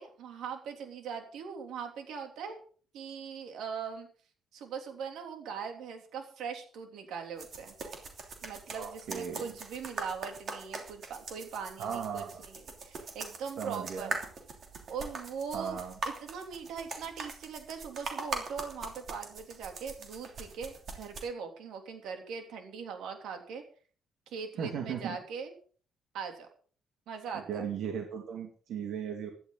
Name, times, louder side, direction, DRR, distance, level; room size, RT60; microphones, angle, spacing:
voice 1, 0.0-2.6 2.9-4.1 4.5-7.7 8.4-14.2 14.9-15.8 16.2-23.6 24.3-25.5 26.1-26.5 27.1-27.6, right 6 dB, 85° right, 4 dB, 3.2 m, -41 dB
sound 1, 7.4-21.2, right 4 dB, 40° right, 3.0 m, -42 dB
voice 2, 8.7-9.5 11.8-12.4 13.6-14.1 15.5-15.9 24.6-25.2 27.3-29.3, right 7 dB, 65° right, 2 dB, 2.4 m, -37 dB
16.0 x 12.0 x 4.0 m, 0.43 s
cardioid pair, 180°, 0 cm